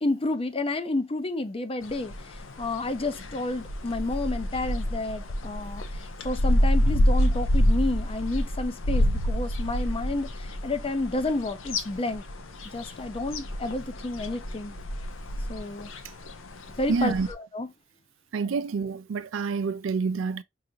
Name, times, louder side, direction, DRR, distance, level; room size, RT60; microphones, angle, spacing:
voice 1, 0.0-12.2 12.6-14.8 15.5-15.9 16.8-17.7, left 2 dB, 30° left, 0.5 m, -30 dB
sound 1, 1.8-17.3, equal, 85° left, 0.7 m, -28 dB
voice 2, 16.9-17.3 18.3-20.4, right 5 dB, 75° right, 0.4 m, -27 dB
4.8 x 2.5 x 2.8 m
head